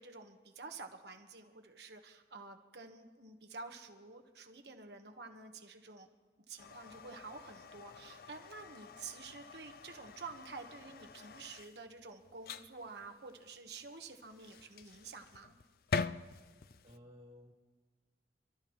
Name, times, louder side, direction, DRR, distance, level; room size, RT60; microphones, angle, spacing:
voice 1, 0.0-6.1 6.5-15.5, right 4 dB, 70° right, 5 dB, 1.4 m, -50 dB
sound 1, 6.6-17.0, left 5 dB, 55° left, 0.4 m, -45 dB
voice 2, 16.8-17.5, left 1 dB, 40° right, -1 dB, 1.9 m, -56 dB
28.5 x 13.0 x 3.2 m, 1.4 s
head